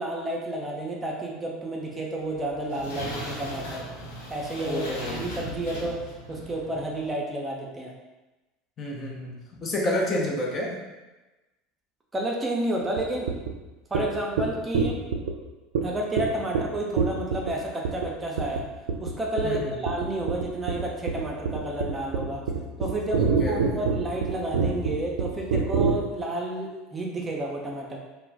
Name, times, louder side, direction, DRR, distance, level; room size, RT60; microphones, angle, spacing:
voice 1, 0.0-3.9 4.3-4.8 5.2-6.0 6.3-7.9 12.1-13.3 13.9-15.0 15.8-18.6 19.0-22.4 22.8-28.0, right 1 dB, 20° right, -2 dB, 0.5 m, -31 dB
sound 1, 2.2-7.1, equal, 75° left, 0.9 m, -38 dB
voice 2, 4.6-5.2 8.8-10.8 19.4-19.8 23.2-23.8, left 1 dB, 35° left, -2 dB, 0.7 m, -30 dB
sound 2, 13.0-13.1 13.3-13.5 13.9-14.0 14.4-14.5 14.7-15.3 15.7-15.8 16.2-16.3 16.5-16.6 17.0-17.5 17.8-18.1 18.4-18.6 18.9-19.1 19.4-19.6 19.9-25.9, right 5 dB, 75° right, 0.3 m, -25 dB
2.3 x 2.2 x 3.4 m, 1.1 s
hypercardioid pair, 80°, 0 cm